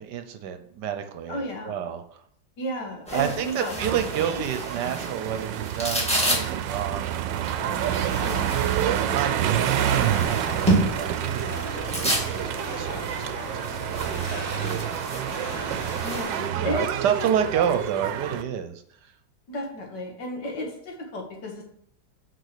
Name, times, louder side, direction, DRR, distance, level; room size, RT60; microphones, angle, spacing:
voice 1, 0.0-2.0 3.1-7.7 8.6-13.5 13.8-15.5 16.5-18.8, right 8 dB, 70° right, 8 dB, 1.3 m, -30 dB
voice 2, 1.3-1.8 2.6-3.8 4.3-4.4 8.2-9.4 16.0-16.9 17.2-17.3 19.5-21.7, equal, 75° left, 1 dB, 2.3 m, -34 dB
sound 1, 3.1-16.5, right 1 dB, 5° left, 1.9 m, -31 dB
sound 2, 3.8-18.4, right 11 dB, 90° right, 1.3 m, -28 dB
sound 3, 7.5-16.2, left 1 dB, 55° left, 3.5 m, -37 dB
6.5 x 4.7 x 6.6 m, 0.66 s
omnidirectional pair, 1.9 m